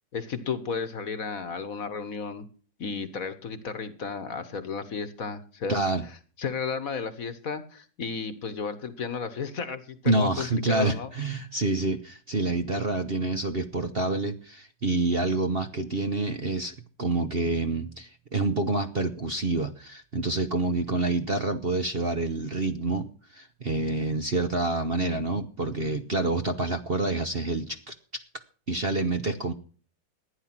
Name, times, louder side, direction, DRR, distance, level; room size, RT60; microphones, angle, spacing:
voice 1, 0.1-2.4 2.8-11.1, left 5 dB, 50° left, 12 dB, 1.5 m, -33 dB
voice 2, 5.7-6.0 10.1-28.2 28.7-29.5, right 2 dB, 40° right, 7 dB, 1.0 m, -27 dB
15.0 x 10.0 x 6.0 m, 0.41 s
omnidirectional pair, 2.0 m